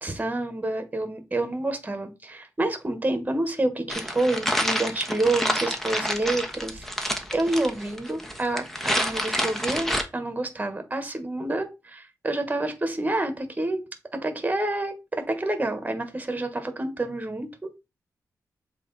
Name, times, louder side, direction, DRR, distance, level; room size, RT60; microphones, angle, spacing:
voice 1, 0.0-8.7 8.9-13.8 14.1-17.7, right 2 dB, 25° right, 1.5 m, -28 dB
sound 1, 3.9-10.0, equal, 5° left, 1.2 m, -28 dB
7.5 x 3.3 x 4.2 m
cardioid pair, 75°, 7 cm